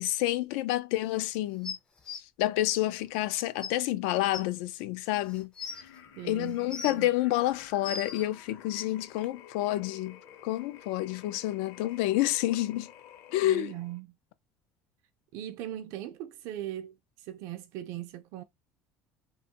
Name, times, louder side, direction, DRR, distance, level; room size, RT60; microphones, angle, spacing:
voice 1, 0.0-1.8 2.1-5.5 5.8-5.9 6.2-12.9 13.3-13.7, left 15 dB, 85° left, 0.4 m, -29 dB
sound 1, 1.6-2.2 3.2-3.3 3.6-3.7 4.3-4.4 5.2-5.8 6.5-7.1 7.6-8.2 9.2-9.3, left 5 dB, 15° left, 0.4 m, -38 dB
sound 2, 5.6-14.0, left 9 dB, 55° left, 0.7 m, -52 dB
voice 2, 6.2-7.1 13.4-14.2 15.3-18.4, right 12 dB, 55° right, 0.4 m, -39 dB
2.9 x 2.2 x 2.8 m
cardioid pair, 180°, 6 cm